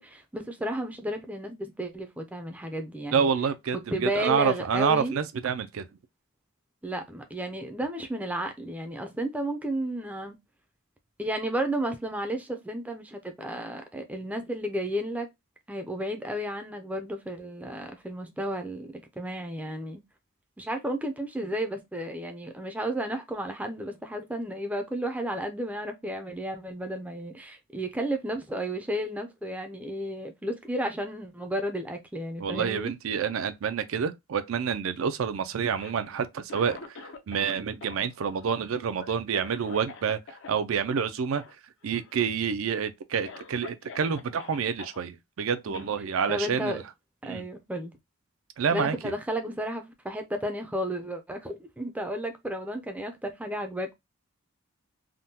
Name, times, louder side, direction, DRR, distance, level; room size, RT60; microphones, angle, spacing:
voice 1, 0.0-3.3 3.9-5.2 6.8-10.4 11.2-15.3 15.7-20.0 20.6-32.9 45.7-45.9 46.3-46.8 47.2-48.0 48.7-53.9, right 1 dB, 5° right, 0.4 m, -33 dB
voice 2, 3.1-5.9 32.4-37.0 37.3-40.2 40.5-41.4 41.8-46.8 47.2-47.4 48.6-49.1, right 6 dB, 70° right, 0.4 m, -28 dB
Cough, 35.7-37.5 37.8-40.5 40.8-41.0 41.4-41.5 41.8-42.3 42.8-42.9 43.2-45.0 45.7-45.9, left 4 dB, 60° left, 0.6 m, -45 dB
3.6 x 2.2 x 2.7 m
head